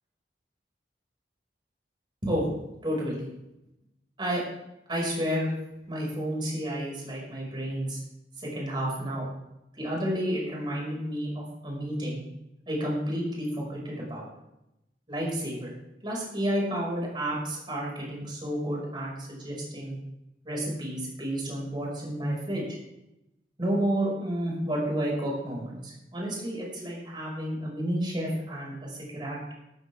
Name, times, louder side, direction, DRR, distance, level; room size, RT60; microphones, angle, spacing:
voice 1, 2.2-2.5 2.8-3.3 4.2-4.4 4.9-5.5 5.9-8.0 8.4-9.3 9.8-12.2 12.7-14.3 15.1-15.7 16.0-19.9 20.4-22.8 23.6-29.5, equal, 25° right, -3 dB, 5.7 m, -31 dB
14.5 x 13.5 x 3.6 m, 0.89 s
head